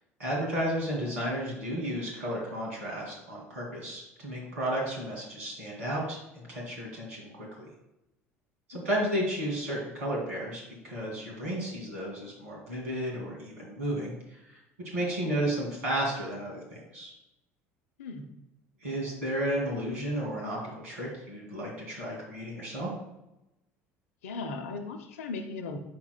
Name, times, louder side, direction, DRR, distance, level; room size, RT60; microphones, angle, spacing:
voice 1, 0.2-7.7 8.7-14.6 14.9-17.1 18.8-22.9, right 1 dB, 80° right, -3 dB, 2.3 m, -33 dB
voice 2, 24.2-25.8, left 3 dB, 75° left, 7 dB, 0.7 m, -37 dB
7.7 x 5.9 x 2.2 m, 0.92 s
figure-of-eight pair, 65°, 8 cm